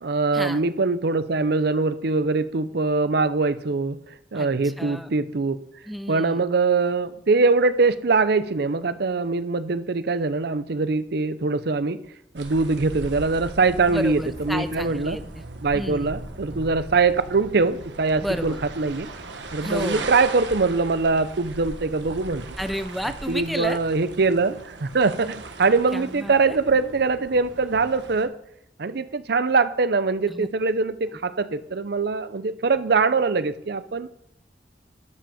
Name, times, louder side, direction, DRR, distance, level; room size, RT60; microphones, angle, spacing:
voice 1, 0.0-4.0 4.3-5.6 6.1-12.0 12.3-15.2 15.6-19.1 19.5-22.6 23.3-28.3 28.8-34.1, right 4 dB, 65° right, 13 dB, 0.7 m, -23 dB
voice 2, 4.3-5.1 5.9-6.4 13.9-15.4 15.7-16.1 18.2-18.6 19.6-20.1 22.6-23.8 25.9-26.6 30.3-30.5, equal, ahead, 10 dB, 0.5 m, -31 dB
sound 1, 12.4-28.3, right 3 dB, 85° right, 1.3 m, -38 dB
12.0 x 6.3 x 6.9 m, 0.75 s
head